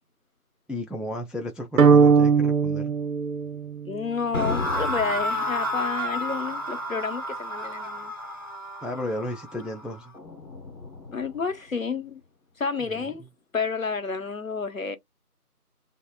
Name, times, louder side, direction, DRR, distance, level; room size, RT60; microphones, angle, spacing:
voice 1, 0.7-3.0 8.8-10.1 12.8-13.1, left 1 dB, ahead, 0.4 m, -33 dB
sound 1, 1.8-4.1, right 5 dB, 65° right, 0.5 m, -19 dB
voice 2, 3.9-8.1 11.1-12.2 12.6-13.2 13.5-15.0, left 5 dB, 60° left, 0.7 m, -30 dB
sound 2, 4.3-11.4, left 1 dB, 30° left, 1.3 m, -31 dB
3.6 x 2.0 x 2.2 m
figure-of-eight pair, 170°, 46 cm